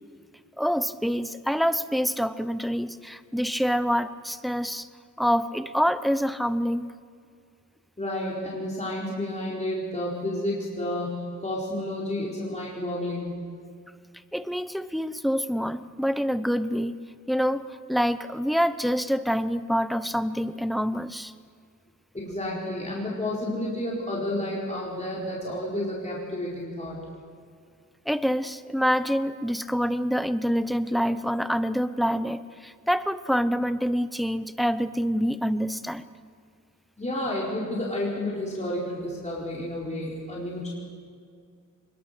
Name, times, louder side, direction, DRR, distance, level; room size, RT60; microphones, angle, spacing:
voice 1, 0.6-4.9 5.2-6.9 14.3-17.0 17.3-21.3 28.1-36.0, equal, ahead, 12 dB, 0.8 m, -26 dB
voice 2, 8.0-13.4 22.1-27.0 37.0-40.7, left 1 dB, 20° left, -5 dB, 4.5 m, -31 dB
23.5 x 21.5 x 6.8 m, 2.2 s
wide cardioid pair, 85°, 31 cm